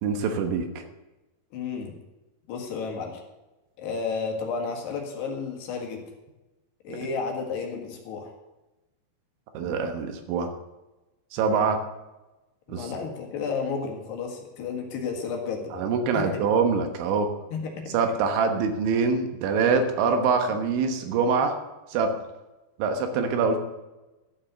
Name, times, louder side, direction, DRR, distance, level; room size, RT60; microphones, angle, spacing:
voice 1, 0.0-0.8 6.9-7.0 9.6-10.5 11.3-11.8 12.7-12.9 15.7-17.3 17.9-21.6 21.9-22.1 22.8-23.6, right 5 dB, 75° right, 6 dB, 3.5 m, -24 dB
voice 2, 1.5-2.0 2.5-3.2 3.8-6.1 6.8-8.3 11.5-11.7 12.7-15.8 16.1-16.3 17.5-18.0, left 5 dB, 65° left, 2 dB, 3.6 m, -32 dB
13.5 x 7.5 x 6.8 m, 1.1 s
omnidirectional pair, 5.5 m